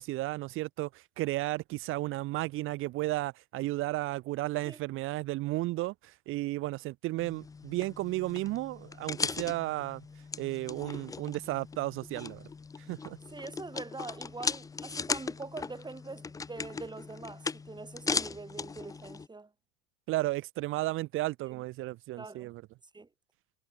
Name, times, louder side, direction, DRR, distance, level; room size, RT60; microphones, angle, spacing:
voice 1, 0.0-5.9 6.3-10.0 10.4-12.5 12.9-13.2 20.1-22.6, right 18 dB, 35° right, 0.6 m, -33 dB
sound 1, 7.2-19.3, left 4 dB, 10° left, 0.6 m, -38 dB
voice 2, 13.3-19.5 21.5-21.6 22.2-22.5 22.9-23.1, right 3 dB, 10° right, 6.3 m, -44 dB
hypercardioid pair, 100°, 36 cm